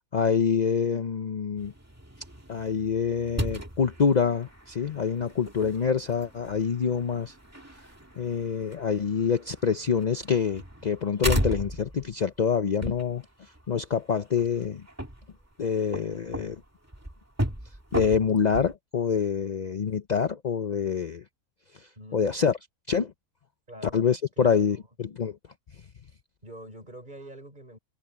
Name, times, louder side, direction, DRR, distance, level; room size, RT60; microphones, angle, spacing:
voice 1, 0.1-1.7 2.5-7.3 8.2-14.8 15.6-16.6 17.9-21.2 21.7-22.6 22.9-23.1 23.9-25.4, left 6 dB, 60° left, 0.4 m, -26 dB
sound 1, 1.6-18.7, right 1 dB, 10° right, 2.0 m, -36 dB
voice 2, 23.7-24.0 24.4-24.8 26.4-27.8, right 1 dB, 25° right, 6.1 m, -45 dB
omnidirectional pair, 1.7 m